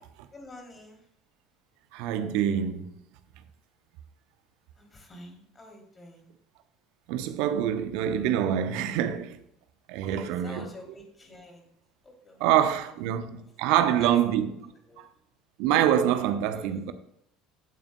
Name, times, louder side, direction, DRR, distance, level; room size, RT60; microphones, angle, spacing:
voice 1, 0.3-1.0 4.8-6.3 10.0-11.7 12.0-12.4 13.7-14.1 14.9-15.0 16.6-16.8, left 1 dB, 20° left, 3.1 m, -47 dB
voice 2, 1.9-2.9 7.1-9.4 9.9-10.7 12.4-14.7 15.0-15.1 15.6-16.9, right 10 dB, 55° right, 0.8 m, -25 dB
15.0 x 8.8 x 2.3 m
figure-of-eight pair, 65°, 0 cm